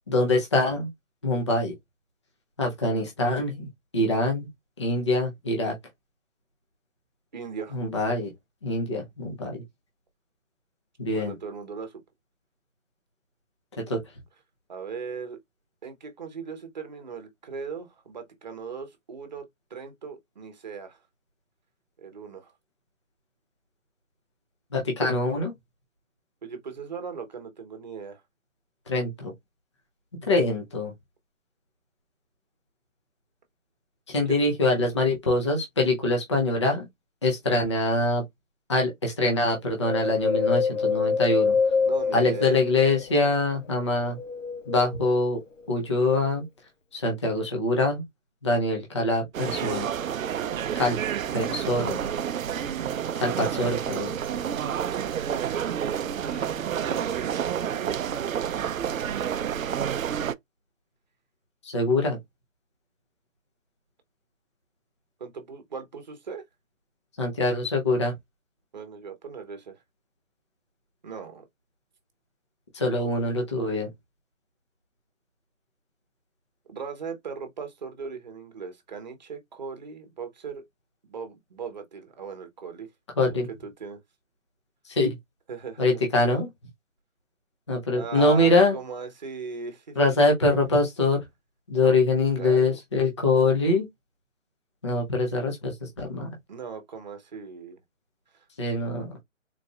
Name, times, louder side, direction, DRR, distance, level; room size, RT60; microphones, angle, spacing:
voice 1, 0.1-0.9 1.2-1.7 2.6-3.7 3.9-4.5 4.8-5.7 7.7-8.3 8.6-9.6 11.0-11.3 13.9-14.0 24.7-25.5 28.9-29.3 30.3-30.9 34.1-36.8 37.2-38.2 38.7-41.6 42.1-44.2 44.7-45.4 45.7-46.4 46.9-48.0 48.4-49.9 50.8-51.0 51.3-52.0 53.2-54.1 61.6-62.2 67.2-68.1 72.7-73.9 83.2-83.5 84.9-85.2 85.8-86.5 87.7-88.8 90.0-91.2 91.7-93.9 94.8-96.3 98.6-99.1, left 2 dB, 20° left, 0.6 m, -24 dB
voice 2, 7.3-7.8 11.1-12.0 14.7-15.4 15.8-21.0 22.0-22.5 26.4-28.2 34.3-34.4 41.8-42.6 56.2-57.5 65.2-66.4 68.7-69.8 71.0-71.5 76.7-80.6 81.1-82.9 83.3-84.0 85.5-85.9 87.9-90.0 91.7-92.0 92.4-92.8 96.5-97.8, right 5 dB, 35° right, 0.9 m, -38 dB
Wind, 39.8-43.4 43.9-45.2 45.7-45.8, left 5 dB, 70° left, 0.9 m, -26 dB
sound 1, 49.3-60.3, right 9 dB, 90° right, 0.5 m, -29 dB
4.0 x 3.0 x 2.3 m
hypercardioid pair, 165°, 39 cm